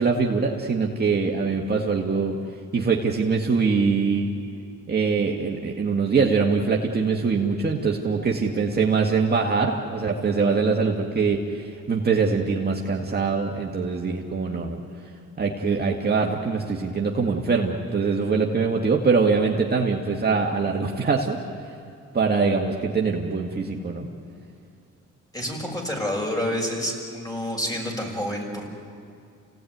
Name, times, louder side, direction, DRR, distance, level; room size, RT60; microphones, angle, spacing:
voice 1, 0.0-2.4 2.7-4.4 4.9-14.8 15.4-21.8 22.1-24.1, right 4 dB, 35° right, -1 dB, 2.0 m, -23 dB
voice 2, 25.3-28.7, equal, 10° left, 0 dB, 6.3 m, -28 dB
29.0 x 17.5 x 9.5 m, 2.4 s
cardioid pair, 90°, 30 cm